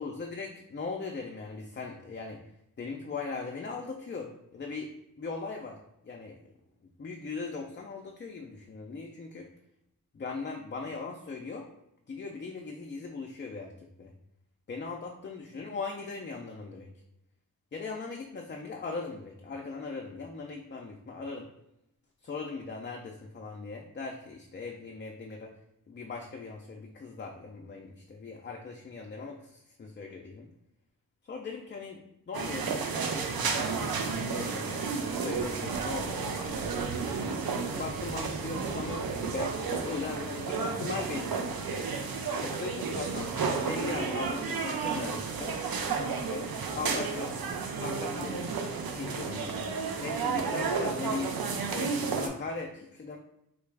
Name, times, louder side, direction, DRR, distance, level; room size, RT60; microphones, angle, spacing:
voice 1, 0.0-2.4 2.8-4.9 5.2-5.8 6.0-6.4 7.0-9.5 10.1-11.7 12.1-14.1 14.7-16.9 17.7-21.5 22.2-25.5 25.9-30.5 31.2-35.0 35.2-36.3 37.7-42.0 42.4-43.3 43.6-45.5 45.9-46.5 46.7-47.4 47.8-49.7 50.0-51.4 51.7-53.2, left 4 dB, 35° left, 1 dB, 0.4 m, -39 dB
sound 1, 32.3-52.3, right 5 dB, 90° right, 0.5 m, -32 dB
3.9 x 2.3 x 3.3 m, 0.83 s
wide cardioid pair, 85°, 35 cm